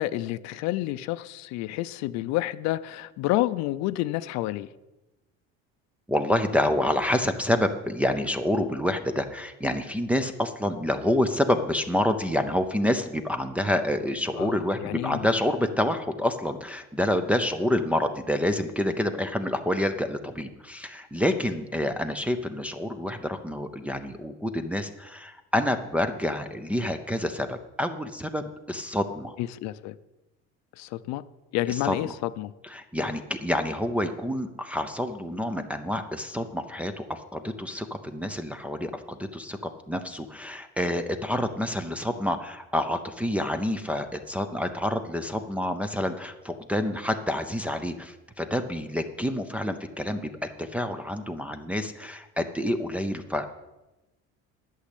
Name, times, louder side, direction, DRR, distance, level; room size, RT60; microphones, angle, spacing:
voice 1, 0.0-4.7 14.4-15.3 29.4-29.9 30.8-31.2 31.5-32.5, left 15 dB, 65° left, 14 dB, 0.6 m, -29 dB
voice 2, 6.1-29.4 31.7-32.1 32.6-50.3 50.6-53.5, left 1 dB, 5° right, 4 dB, 0.4 m, -28 dB
11.5 x 6.4 x 8.3 m, 1.0 s
cardioid pair, 170°, 30 cm